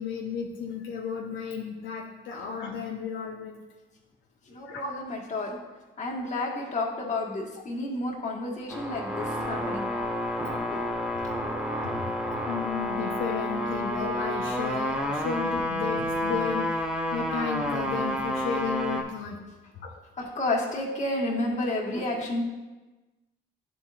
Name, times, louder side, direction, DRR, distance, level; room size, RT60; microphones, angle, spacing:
voice 1, 0.0-3.6 4.6-4.9 11.8-12.1 12.5-16.8 17.1-19.4 19.7-19.9, left 6 dB, 75° left, -2 dB, 0.7 m, -33 dB
voice 2, 4.5-5.6 6.0-9.9 10.4-10.9 20.2-22.4, left 2 dB, 35° left, -3 dB, 1.5 m, -31 dB
sound 1, 8.7-19.0, left 1 dB, 5° right, 0.8 m, -30 dB
10.5 x 3.8 x 2.4 m, 1.2 s
cardioid pair, 90°, 20 cm